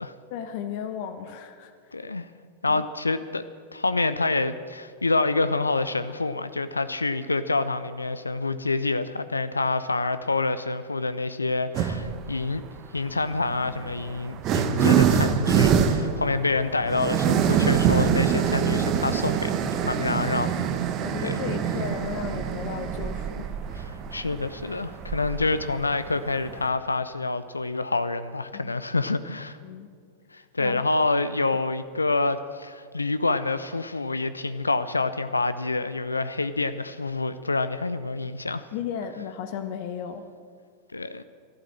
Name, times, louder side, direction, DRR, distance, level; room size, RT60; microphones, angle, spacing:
voice 1, 0.3-2.0 2.7-2.8 20.0-20.5 21.0-23.6 28.5-28.8 29.6-29.9 30.6-30.9 38.7-40.3, left 8 dB, 50° left, 9 dB, 1.0 m, -35 dB
voice 2, 1.9-2.3 2.6-3.4 3.7-12.6 12.9-20.7 21.2-21.4 24.1-29.6 30.3-38.6 40.9-41.2, left 3 dB, 80° left, 13 dB, 0.5 m, -27 dB
sound 1, 11.7-12.2 13.2-26.7, right 8 dB, 35° right, 1.2 m, -25 dB
14.0 x 12.0 x 7.6 m, 2.1 s
figure-of-eight pair, 90°, 0 cm